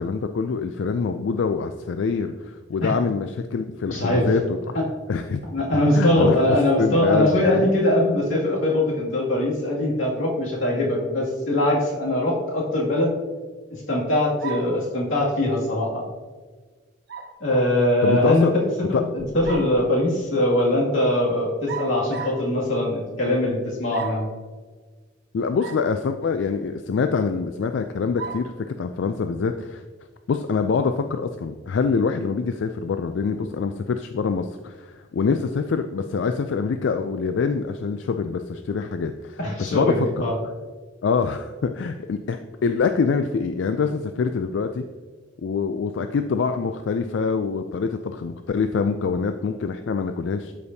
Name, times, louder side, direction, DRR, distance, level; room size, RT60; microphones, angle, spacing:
voice 1, 0.0-4.8 5.1-5.4 5.7-6.4 6.8-7.7 18.0-18.5 18.9-19.0 25.3-29.8 30.3-39.4 39.7-40.2 41.0-44.8 45.4-50.5, left 5 dB, 65° left, 7 dB, 0.4 m, -25 dB
voice 2, 3.9-4.3 4.7-4.9 5.5-13.1 13.7-16.0 17.4-18.5 18.9-24.3 39.4-40.3, left 1 dB, 90° left, -4 dB, 2.3 m, -22 dB
sound 1, 14.4-14.8 17.1-17.4 19.2-19.8 21.7-22.5 23.9-24.3 25.6-25.9 26.4-26.5 28.2-28.5, right 6 dB, 55° right, 0.8 m, -35 dB
12.5 x 5.2 x 2.7 m, 1.4 s
head